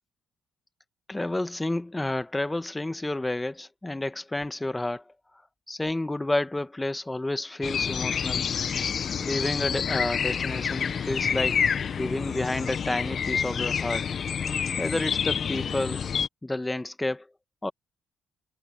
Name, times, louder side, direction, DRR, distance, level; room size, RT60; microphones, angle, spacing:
voice 1, 1.1-5.0 5.7-8.5 9.2-11.6 11.9-14.1 14.8-16.0 16.4-17.3 17.6-17.7, left 2 dB, 15° left, 1.4 m, -30 dB
sound 1, 7.6-16.3, left 7 dB, 50° left, 0.8 m, -28 dB
cardioid pair, 90°, 0 cm